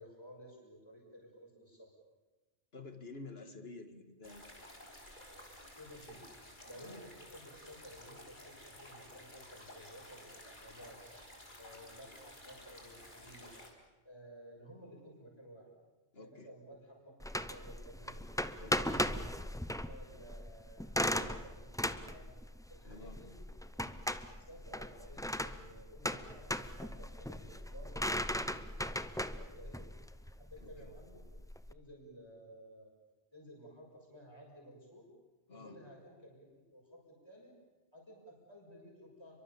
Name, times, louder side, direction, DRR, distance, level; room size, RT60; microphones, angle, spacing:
voice 1, 0.0-1.9 5.8-6.2 6.6-11.0 11.6-13.5 14.0-15.7 16.1-18.3 18.7-19.5 19.9-22.4 22.7-23.3 23.7-23.8 24.2-29.9 30.4-31.3 31.7-32.9 33.3-35.1 35.5-37.5 37.9-39.4, equal, 25° left, -2 dB, 6.7 m, -54 dB
voice 2, 2.7-4.4 6.8-7.0 16.1-16.5 18.6-18.9 22.8-23.2 30.6-30.9 35.5-35.8, left 3 dB, 65° left, 7 dB, 2.3 m, -50 dB
sound 1, 4.2-13.7, left 1 dB, 45° left, 4.1 m, -54 dB
sound 2, 17.2-31.7, equal, 5° left, 0.7 m, -38 dB
30.0 x 23.5 x 7.2 m, 1.2 s
omnidirectional pair, 1.1 m